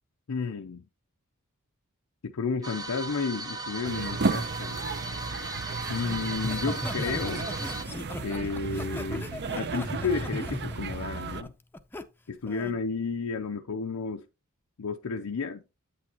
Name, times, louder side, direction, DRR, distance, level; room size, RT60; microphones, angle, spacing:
voice 1, 0.3-0.8 2.2-4.8 5.9-7.5 8.2-11.5 12.3-14.3 14.8-15.6, left 5 dB, 80° left, 0.6 m, -32 dB
sound 1, 2.6-7.8, right 2 dB, 15° right, 0.9 m, -37 dB
sound 2, 3.8-11.4, right 4 dB, 50° right, 0.6 m, -34 dB
Laughter, 6.4-12.0 12.5-12.8, left 1 dB, 10° left, 0.5 m, -37 dB
8.6 x 8.5 x 2.9 m
head